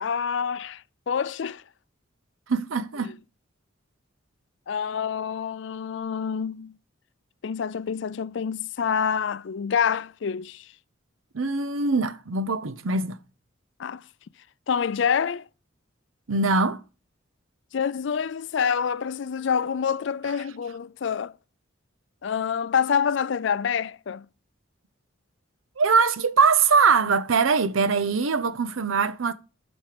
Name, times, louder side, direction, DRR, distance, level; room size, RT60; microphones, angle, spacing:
voice 1, 0.0-1.6 3.0-3.1 4.7-6.7 7.4-10.7 13.8-14.0 14.7-15.4 17.7-21.3 22.2-24.3, left 7 dB, 60° left, 0.4 m, -27 dB
voice 2, 2.5-3.1 11.3-13.2 16.3-16.8 25.8-29.3, right 4 dB, 80° right, 0.7 m, -22 dB
7.5 x 5.4 x 4.9 m
head